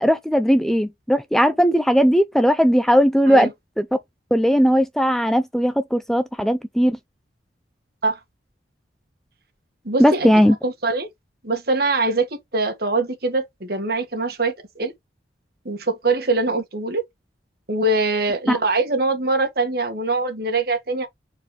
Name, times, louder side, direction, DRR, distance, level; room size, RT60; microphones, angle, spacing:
voice 1, 0.0-3.5 3.8-4.0 4.3-7.0 10.0-10.6 18.5-18.6, equal, ahead, 0.4 m, -18 dB
voice 2, 9.9-10.3 10.6-11.1 11.4-14.9 15.7-17.0 17.7-21.1, right 3 dB, 55° right, 1.8 m, -23 dB
4.6 x 4.5 x 5.0 m
head